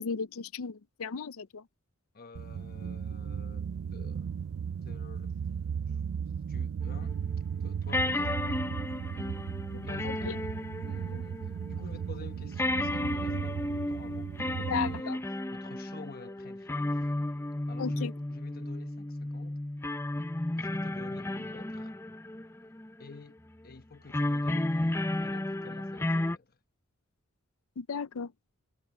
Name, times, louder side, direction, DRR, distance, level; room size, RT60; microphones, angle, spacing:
voice 1, 0.0-1.6 10.0-10.4 11.1-11.2 14.7-15.2 17.8-18.1 27.8-28.3, left 5 dB, 85° left, 0.6 m, -35 dB
voice 2, 2.1-4.3 4.8-5.4 5.9-6.1 6.5-7.2 7.6-8.4 9.1-9.4 9.8-10.5 10.8-17.1 17.7-19.6 20.6-22.0 23.0-26.6, left 3 dB, 45° left, 1.1 m, -50 dB
sound 1, 2.3-15.0, right 7 dB, 75° right, 0.4 m, -36 dB
sound 2, 7.0-7.1 7.9-11.7 12.0-12.1 12.6-23.1 24.1-26.4, left 1 dB, 10° left, 0.6 m, -33 dB
head